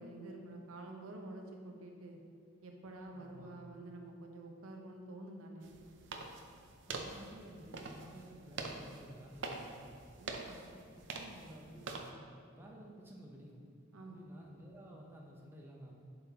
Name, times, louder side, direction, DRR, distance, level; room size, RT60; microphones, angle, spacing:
voice 1, 0.0-2.2 2.6-5.7 10.2-10.6 13.9-14.3, right 2 dB, 90° right, 2 dB, 0.8 m, -49 dB
voice 2, 3.1-3.7 6.9-9.8 10.9-13.6 14.1-15.9, equal, 10° right, -2 dB, 0.6 m, -53 dB
sound 1, 5.6-12.1, right 3 dB, 60° right, 0.6 m, -46 dB
7.7 x 5.8 x 2.9 m, 2.3 s
head